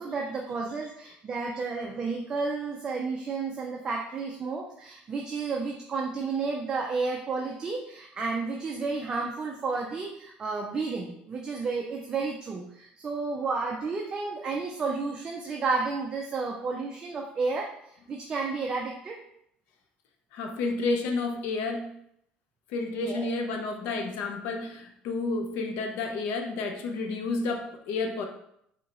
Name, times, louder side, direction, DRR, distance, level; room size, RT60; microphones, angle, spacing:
voice 1, 0.0-17.7 18.1-19.2 23.0-23.3, right 4 dB, 25° right, 0 dB, 0.4 m, -31 dB
voice 2, 20.3-21.9 22.7-28.2, left 3 dB, 75° left, 4 dB, 0.6 m, -30 dB
5.1 x 2.8 x 3.0 m, 0.73 s
cardioid pair, 155°, 3 cm